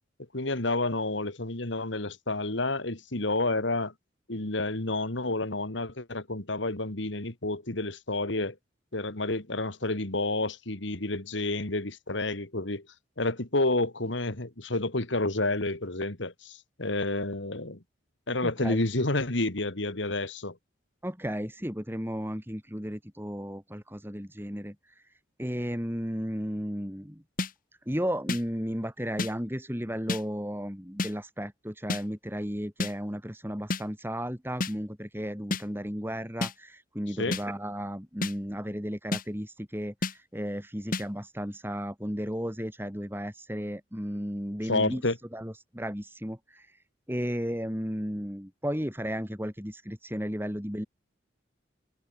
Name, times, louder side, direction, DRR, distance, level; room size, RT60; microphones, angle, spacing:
voice 1, 0.3-3.9 4.3-8.6 8.9-12.9 13.2-17.8 18.3-20.6 37.2-37.4 44.7-45.2, left 2 dB, 70° left, 2.5 m, -30 dB
voice 2, 18.4-18.8 21.0-25.0 25.4-27.2 27.9-45.0 45.3-50.9, equal, 10° right, 5.7 m, -34 dB
sound 1, 27.4-27.5 28.3-28.4 29.2-29.3 30.1-30.2 31.0-31.1 31.9-32.0 32.8-32.9 33.7-33.8 34.6-34.7 35.5-35.6 36.4-36.5 37.3-37.4 38.2-38.3 39.1-39.2 40.0-40.1 40.9-41.0, left 3 dB, 45° left, 1.9 m, -29 dB
head